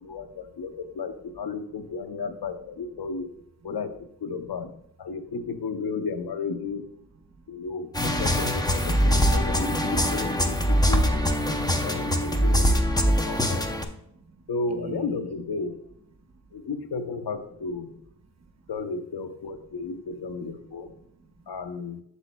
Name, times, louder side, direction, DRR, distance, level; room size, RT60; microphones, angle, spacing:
voice 1, 0.0-3.3 3.6-4.7 5.0-6.8 7.5-11.1 11.5-13.7 14.5-15.7 16.5-17.9 18.7-20.9 21.5-22.0, left 4 dB, 85° left, 8 dB, 0.7 m, -33 dB
sound 1, 7.9-13.8, equal, 10° left, 0.5 m, -23 dB
voice 2, 13.9-15.2 18.4-18.5 20.8-21.5, right 4 dB, 45° right, 6 dB, 0.8 m, -45 dB
8.0 x 7.0 x 2.2 m, 0.75 s
wide cardioid pair, 130°, 37 cm